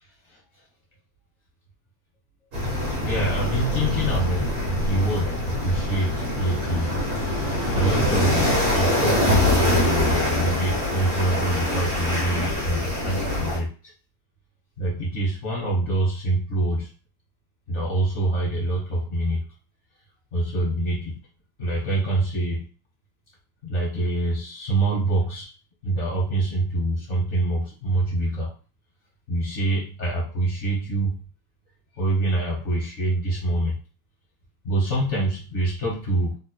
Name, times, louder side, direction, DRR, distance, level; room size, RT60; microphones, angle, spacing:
sound 1, 2.5-13.6, left 1 dB, 45° right, 1.1 m, -24 dB
voice 1, 3.0-4.5 4.8-6.9 7.7-13.7 14.8-16.9 17.7-19.4 20.3-21.2 21.6-22.7 23.6-25.5 25.8-28.5 29.3-31.2 32.0-33.8 34.6-36.4, right 2 dB, 45° left, -4 dB, 0.9 m, -25 dB
3.5 x 3.0 x 2.2 m, 0.37 s
omnidirectional pair, 2.4 m